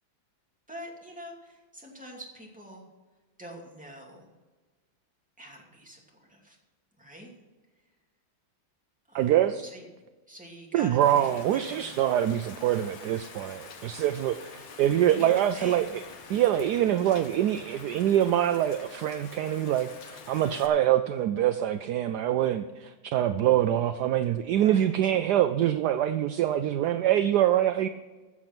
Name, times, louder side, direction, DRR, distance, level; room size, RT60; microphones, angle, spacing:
voice 1, 0.7-2.8 3.4-4.3 5.4-6.6 7.0-7.3 9.1-9.8 10.3-12.0 15.1-15.9 24.5-24.9, equal, 5° right, -2 dB, 2.5 m, -45 dB
voice 2, 9.1-9.6 10.7-15.9 16.3-27.9, right 11 dB, 75° right, 10 dB, 0.9 m, -25 dB
Rain, 11.0-20.7, left 5 dB, 90° left, 2.1 m, -47 dB
14.5 x 7.2 x 6.0 m, 1.3 s
omnidirectional pair, 2.2 m